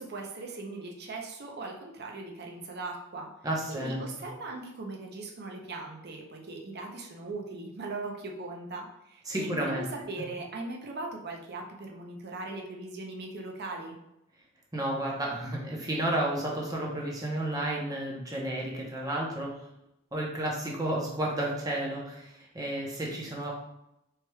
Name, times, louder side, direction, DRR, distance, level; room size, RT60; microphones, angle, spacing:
voice 1, 0.0-3.3 3.7-14.0, right 3 dB, 50° right, 1 dB, 0.6 m, -39 dB
voice 2, 3.4-4.0 9.3-9.8 14.7-19.5 20.1-23.5, right 1 dB, 15° right, -3 dB, 0.8 m, -32 dB
4.5 x 3.2 x 2.3 m, 0.87 s
head